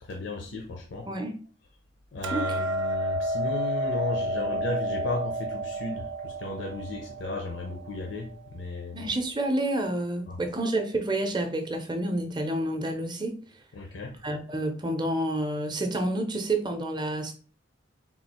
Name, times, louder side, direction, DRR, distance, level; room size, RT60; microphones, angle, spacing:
voice 1, 0.1-1.1 2.1-9.1 10.3-10.4 13.8-14.2, left 2 dB, 70° left, 1 dB, 0.6 m, -34 dB
Hammer, 2.2-8.5, right 1 dB, 75° right, 0.6 m, -31 dB
voice 2, 8.9-13.4 14.2-17.3, right 1 dB, 20° right, 5 dB, 0.6 m, -29 dB
3.7 x 2.4 x 4.2 m, 0.39 s
head